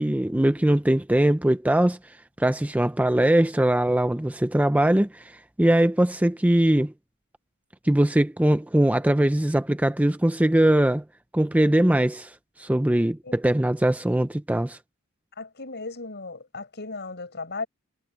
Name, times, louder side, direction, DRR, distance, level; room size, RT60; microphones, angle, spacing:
voice 1, 0.0-2.0 2.4-6.9 7.8-11.0 11.3-12.3 12.6-14.8, right 1 dB, 5° right, 0.5 m, -21 dB
voice 2, 15.4-17.7, left 3 dB, 50° left, 7.9 m, -36 dB
head